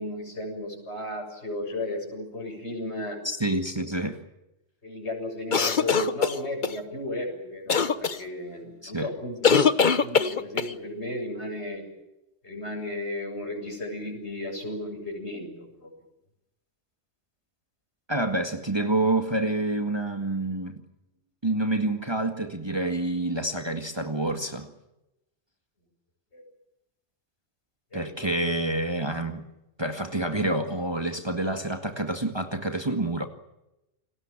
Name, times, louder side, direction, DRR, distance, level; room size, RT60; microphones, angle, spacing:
voice 1, 0.0-3.2 4.8-11.8 12.4-15.9 26.3-26.4 27.9-28.3, left 1 dB, 65° left, 3 dB, 7.7 m, -34 dB
voice 2, 3.2-4.2 8.8-9.1 18.1-20.8 21.4-24.7 27.9-29.4 29.8-33.3, right 2 dB, 20° right, 5 dB, 1.9 m, -28 dB
sound 1, 5.5-6.8 7.7-8.2 9.4-10.7, left 6 dB, 45° left, 1.2 m, -22 dB
29.5 x 20.5 x 7.4 m, 0.91 s
omnidirectional pair, 1.2 m